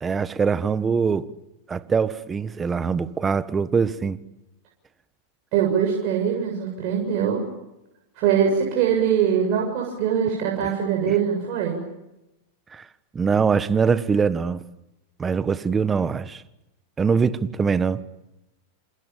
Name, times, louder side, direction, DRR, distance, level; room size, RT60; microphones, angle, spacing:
voice 1, 0.0-1.3 1.7-4.2 10.6-10.7 11.1-11.2 12.7-12.8 13.1-14.6 15.2-16.4 17.0-18.0, right 5 dB, 20° right, 1.5 m, -23 dB
voice 2, 5.5-7.4 8.2-11.8, right 8 dB, 50° right, 7.0 m, -22 dB
29.5 x 27.5 x 7.3 m
hypercardioid pair, 100°, 0 cm